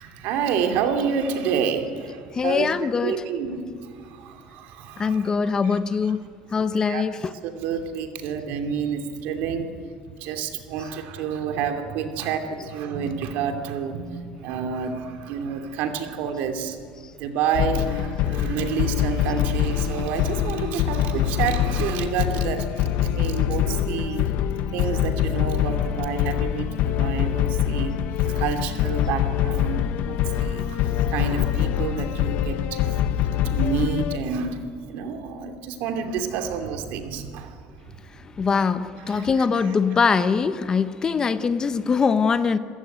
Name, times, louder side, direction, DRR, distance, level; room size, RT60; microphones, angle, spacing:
voice 1, 0.0-5.3 5.6-5.8 6.9-7.0 7.4-9.8 10.1-16.8 17.2-24.3 24.7-27.9 28.2-32.9 33.4-37.6 38.6-38.7 39.1-39.7, right 6 dB, 70° right, 2.7 m, -29 dB
voice 2, 2.3-3.1 5.0-6.3 6.5-7.3 38.4-42.6, left 5 dB, 25° left, 0.8 m, -22 dB
sound 1, 17.5-34.2, left 10 dB, 60° left, 1.0 m, -24 dB
27.0 x 15.5 x 9.3 m
cardioid pair, 145°, 3 cm